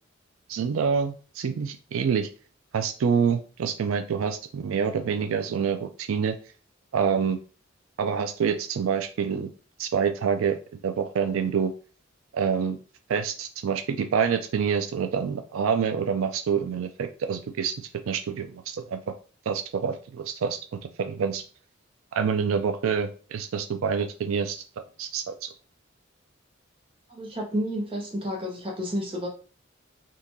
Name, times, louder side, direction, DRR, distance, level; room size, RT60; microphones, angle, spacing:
voice 1, 0.5-2.3 2.7-6.3 6.9-7.4 8.0-9.5 9.8-11.7 12.3-12.8 13.1-17.7 18.1-19.0 19.5-20.6 21.0-21.4 22.1-24.6 25.0-25.5, right 6 dB, 90° right, 8 dB, 0.4 m, -27 dB
voice 2, 27.1-29.3, equal, 25° right, 0 dB, 1.0 m, -30 dB
3.7 x 2.8 x 2.7 m, 0.37 s
head